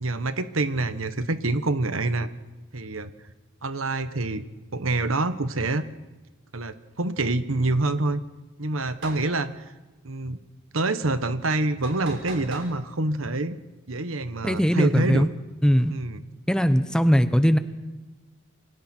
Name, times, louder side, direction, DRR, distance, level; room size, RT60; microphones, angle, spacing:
voice 1, 0.0-2.3 2.7-3.1 3.6-4.4 4.7-5.8 6.5-8.2 8.6-9.6 10.0-10.4 10.7-13.6 13.9-15.3 15.9-16.2, right 2 dB, 90° right, 11 dB, 1.3 m, -26 dB
sound 1, 8.9-9.2 11.8-12.7, right 3 dB, 70° right, 6.3 m, -38 dB
voice 2, 14.4-15.3 15.6-15.9 16.5-17.6, equal, 5° left, 10 dB, 0.8 m, -20 dB
29.0 x 23.5 x 4.5 m, 1.1 s
head